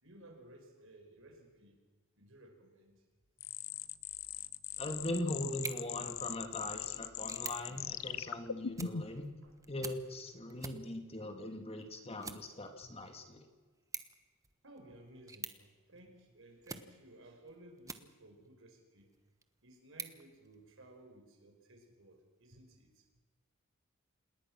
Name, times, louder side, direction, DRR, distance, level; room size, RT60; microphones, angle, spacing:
voice 1, 0.0-1.8 2.2-3.0 3.5-3.6 6.9-7.1 8.5-8.7 9.4-9.6 10.0-10.2 11.9-12.0 12.8-13.1 14.6-19.1 19.6-23.1, right 1 dB, 65° right, 3 dB, 5.3 m, -58 dB
sound 1, 3.4-9.2, left 9 dB, 75° left, 0.8 m, -41 dB
voice 2, 4.8-9.2 9.7-13.4, left 1 dB, 30° left, 5 dB, 2.4 m, -40 dB
sound 2, 5.5-18.5 19.0-21.0, right 5 dB, 15° right, 1.2 m, -51 dB
27.0 x 20.0 x 6.2 m, 1.3 s
head